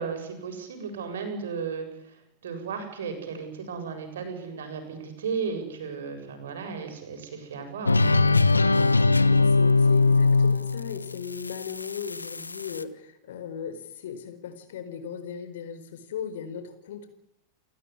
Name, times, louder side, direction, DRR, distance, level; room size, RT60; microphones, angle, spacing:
voice 1, 0.0-1.9 2.4-8.2, right 5 dB, 60° right, 6 dB, 7.5 m, -34 dB
sound 1, 7.9-12.8, left 3 dB, 80° left, 1.1 m, -21 dB
voice 2, 9.3-17.1, left 8 dB, 60° left, 10 dB, 4.5 m, -37 dB
29.5 x 15.0 x 10.0 m, 0.87 s
figure-of-eight pair, 90°, 0 cm